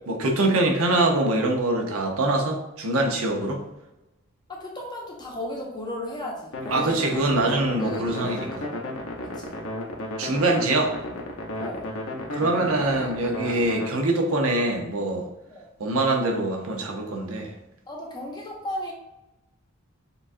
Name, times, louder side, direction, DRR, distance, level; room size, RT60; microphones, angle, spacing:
voice 1, 0.1-3.6 6.7-8.7 10.2-10.9 12.3-15.3 15.8-17.5, right 2 dB, 70° right, 2 dB, 0.8 m, -24 dB
voice 2, 4.5-7.4 7.7-9.6 11.6-12.0 15.5-15.7 17.9-18.9, left 1 dB, 20° left, -1 dB, 0.8 m, -36 dB
sound 1, 6.5-13.9, left 1 dB, 70° left, 0.8 m, -33 dB
6.8 x 2.4 x 2.6 m, 0.95 s
head